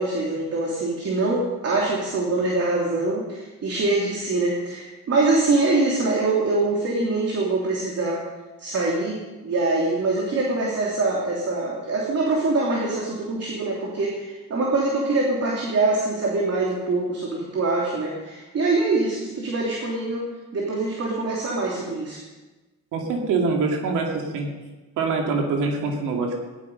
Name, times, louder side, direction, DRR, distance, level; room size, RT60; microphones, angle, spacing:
voice 1, 0.0-8.2 8.6-20.2 20.5-22.2, right 2 dB, 55° right, -2 dB, 3.0 m, -24 dB
voice 2, 22.9-24.5 25.0-26.4, right 4 dB, 90° right, 1 dB, 2.6 m, -24 dB
17.0 x 11.5 x 5.3 m, 1.2 s
cardioid pair, 90°, 30 cm